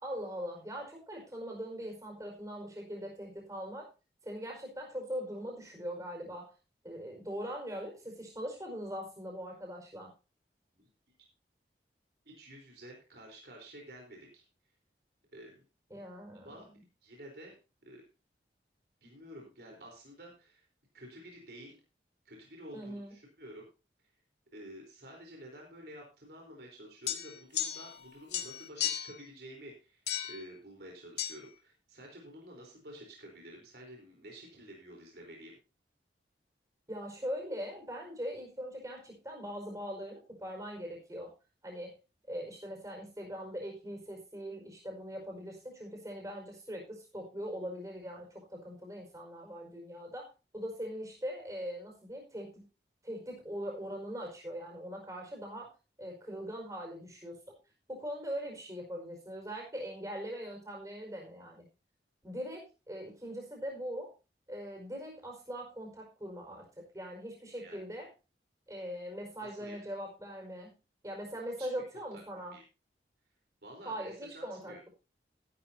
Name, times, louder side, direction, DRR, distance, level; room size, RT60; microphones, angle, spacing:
voice 1, 0.0-3.9 4.2-6.5 6.8-10.1 15.9-16.6 22.7-23.1 36.9-41.3 41.6-42.0 42.3-52.6 53.0-55.7 56.0-57.5 57.9-61.7 62.2-64.1 64.5-68.1 68.7-70.8 71.0-72.6 73.8-74.9, equal, 20° right, 0 dB, 5.0 m, -41 dB
voice 2, 12.2-14.4 15.3-15.6 16.4-16.7 17.0-17.5 17.8-18.0 19.0-20.6 20.9-21.8 22.2-23.7 24.5-35.5 67.6-67.8 69.4-69.8 71.6-71.7 72.5-72.6 73.6-74.8, right 1 dB, 65° right, -1 dB, 4.2 m, -50 dB
sound 1, 27.1-28.0 28.3-29.2 30.1-30.4 31.2-31.3, left 11 dB, 80° left, 1.8 m, -35 dB
14.0 x 12.0 x 2.8 m, 0.31 s
head